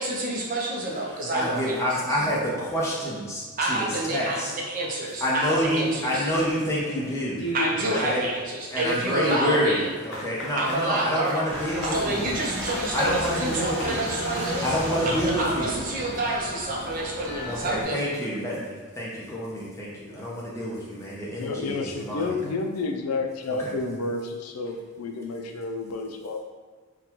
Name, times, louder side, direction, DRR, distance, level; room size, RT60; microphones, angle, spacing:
voice 1, 0.0-1.8 3.6-6.3 7.5-9.9 10.6-11.4 11.9-14.7 15.1-18.0, right 1 dB, 40° right, -2 dB, 0.5 m, -28 dB
voice 2, 1.0-4.5 5.2-7.4 7.8-8.2 8.7-12.2 12.9-14.1 14.6-15.8 17.4-22.4 23.6-23.7, equal, 15° left, -6 dB, 0.7 m, -28 dB
sound 1, 6.1-7.0 7.4-8.3 8.6-14.8, equal, 60° left, 0.8 m, -36 dB
sound 2, 11.5-17.8, right 1 dB, 60° right, 0.9 m, -34 dB
voice 3, 21.4-26.4, left 3 dB, 90° left, 4 dB, 0.4 m, -30 dB
4.0 x 2.2 x 2.8 m, 1.5 s
head